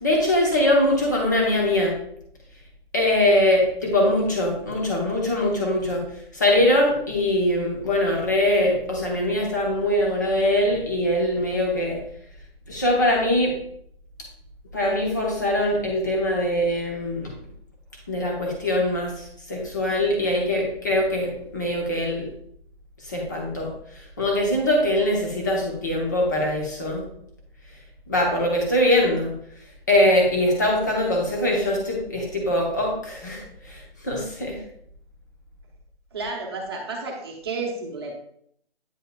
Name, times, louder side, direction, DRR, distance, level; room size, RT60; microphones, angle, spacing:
voice 1, 0.0-1.9 2.9-6.0 6.3-12.0 12.7-13.5 14.7-17.3 18.1-22.3 23.1-23.7 24.2-27.0 28.1-29.3 29.9-34.6, left 1 dB, 20° left, -1 dB, 0.9 m, -22 dB
voice 2, 36.1-38.1, right 3 dB, 25° right, -1 dB, 1.1 m, -31 dB
9.1 x 4.5 x 2.3 m, 0.69 s
hypercardioid pair, 170°, 31 cm